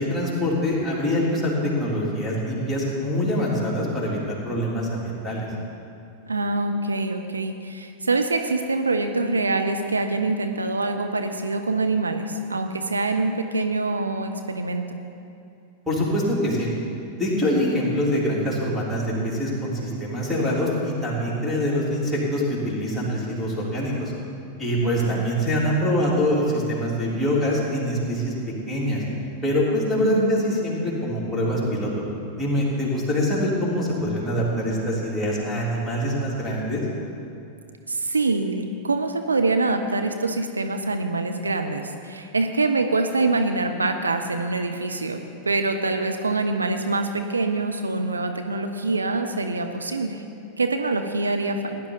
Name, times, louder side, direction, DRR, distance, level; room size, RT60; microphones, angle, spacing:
voice 1, 0.0-5.5 15.9-16.7 17.2-24.1 24.6-28.3 28.7-29.0 29.4-31.9 32.4-36.8, equal, ahead, -7 dB, 3.6 m, -24 dB
voice 2, 6.3-15.0 24.8-25.3 29.9-30.6 37.9-50.2 50.6-51.8, right 3 dB, 75° right, 6 dB, 0.6 m, -25 dB
16.5 x 10.5 x 4.1 m, 2.7 s
figure-of-eight pair, 90°, 0 cm